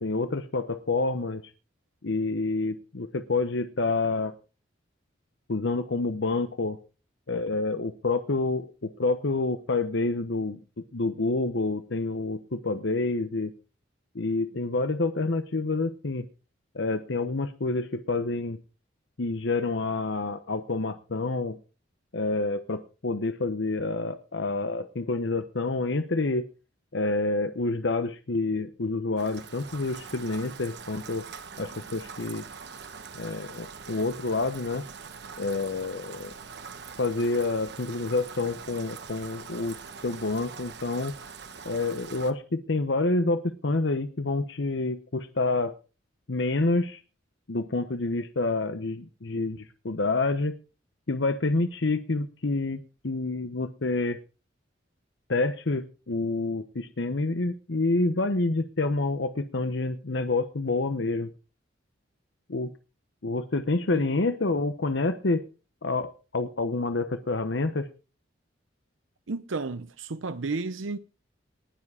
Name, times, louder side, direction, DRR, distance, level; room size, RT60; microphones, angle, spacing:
voice 1, 0.0-1.4 2.0-4.3 5.5-6.8 7.3-10.6 10.9-13.5 14.1-16.3 16.7-18.6 19.2-21.6 22.1-26.5 26.9-31.3 31.6-32.5 33.2-34.8 35.4-36.3 37.0-39.7 40.0-41.1 41.6-45.7 46.3-47.0 47.5-50.5 51.1-54.2 55.3-61.3 62.5-62.7 63.2-65.4 65.8-67.9, left 3 dB, 65° left, 0.9 m, -28 dB
Rain, 29.2-42.3, right 5 dB, 60° right, 1.3 m, -43 dB
voice 2, 69.3-71.0, right 3 dB, 85° right, 0.7 m, -32 dB
19.5 x 7.5 x 4.9 m
head